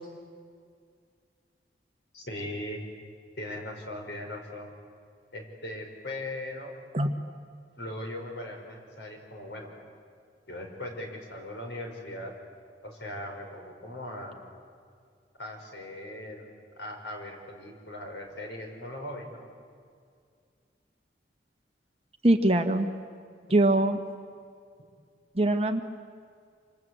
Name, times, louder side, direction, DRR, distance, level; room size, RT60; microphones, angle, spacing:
voice 1, 2.1-2.8 3.4-4.7 5.3-6.7 7.8-9.7 10.5-12.3 12.8-14.4 15.4-16.5 16.8-19.4, left 1 dB, 85° left, 2 dB, 5.7 m, -39 dB
voice 2, 22.2-22.9 23.5-24.0 25.3-25.8, right 1 dB, 35° right, 5 dB, 1.5 m, -22 dB
27.5 x 26.5 x 8.0 m, 2.2 s
head